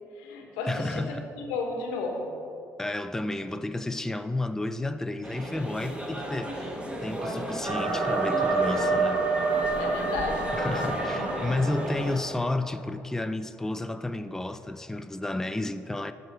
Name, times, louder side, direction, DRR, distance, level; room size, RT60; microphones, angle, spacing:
voice 1, 0.1-2.3 9.8-11.7, left 3 dB, 90° left, 1.2 m, -33 dB
voice 2, 0.7-1.3 2.8-9.2 10.5-16.1, left 2 dB, 10° left, 0.4 m, -32 dB
sound 1, 5.2-12.2, right 1 dB, 15° right, 1.3 m, -34 dB
sound 2, 7.6-12.5, right 3 dB, 55° right, 1.7 m, -28 dB
7.4 x 4.9 x 6.8 m
supercardioid pair, 65°, 6 cm